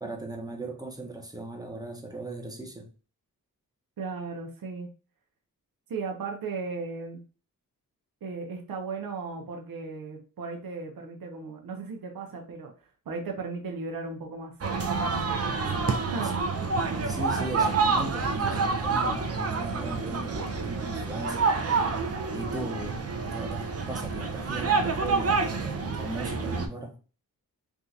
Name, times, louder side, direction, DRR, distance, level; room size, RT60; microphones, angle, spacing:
voice 1, 0.0-2.9 16.2-16.3 16.9-21.5 22.3-23.0 23.3-26.9, right 2 dB, 10° right, 0.8 m, -38 dB
voice 2, 4.0-4.9 5.9-7.2 8.2-12.7 13.1-14.5 14.9-15.7 16.1-16.4, right 4 dB, 75° right, 0.8 m, -36 dB
sound 1, 14.6-26.7, right 4 dB, 45° right, 0.6 m, -28 dB
3.5 x 2.4 x 2.7 m
cardioid pair, 75°, 35 cm